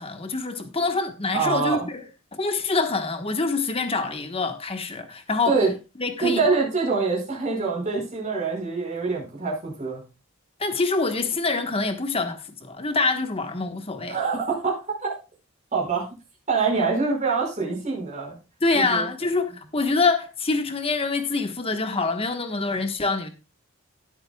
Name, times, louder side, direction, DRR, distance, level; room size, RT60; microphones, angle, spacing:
voice 1, 0.0-2.0 2.3-5.6 6.0-6.4 10.6-14.2 18.6-23.3, left 3 dB, 25° left, 1.3 m, -25 dB
voice 2, 1.3-1.9 5.4-5.7 6.2-10.0 14.1-15.1 15.7-16.1 16.5-18.4 18.7-19.0, right 4 dB, 35° right, 5.1 m, -25 dB
17.0 x 8.0 x 2.3 m
head